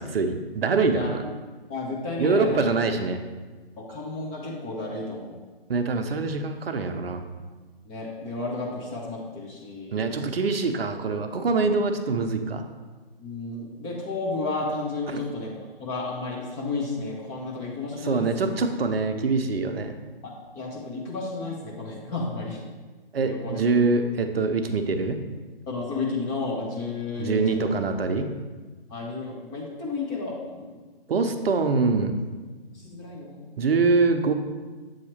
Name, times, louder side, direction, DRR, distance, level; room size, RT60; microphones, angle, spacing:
voice 1, 0.0-1.2 2.2-3.2 5.7-7.2 9.9-12.6 15.1-15.2 18.0-20.0 23.1-25.2 27.2-28.3 31.1-32.1 33.6-34.3, right 4 dB, 75° right, 7 dB, 0.7 m, -24 dB
voice 2, 0.9-1.3 1.7-2.7 3.8-5.4 7.8-10.0 13.2-18.5 20.5-22.6 23.2-23.6 25.7-27.7 28.9-30.8 32.7-33.7, left 3 dB, 15° left, -3 dB, 0.6 m, -32 dB
7.7 x 2.9 x 4.2 m, 1.3 s
hypercardioid pair, 140°, 30 cm